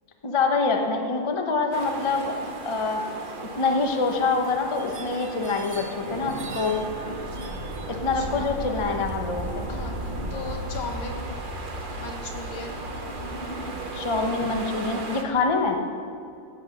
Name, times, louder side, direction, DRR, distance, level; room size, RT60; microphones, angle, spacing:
voice 1, 0.2-2.4 2.6-3.0 3.6-6.9 7.9-9.7 13.9-15.8, left 4 dB, 25° left, 3 dB, 0.7 m, -25 dB
sound 1, 1.7-15.2, right 2 dB, 35° right, 0.9 m, -35 dB
voice 2, 7.9-8.5 9.7-11.3 12.0-12.8, left 3 dB, 75° left, 2 dB, 2.5 m, -37 dB
15.5 x 8.3 x 6.6 m, 2.5 s
omnidirectional pair, 2.2 m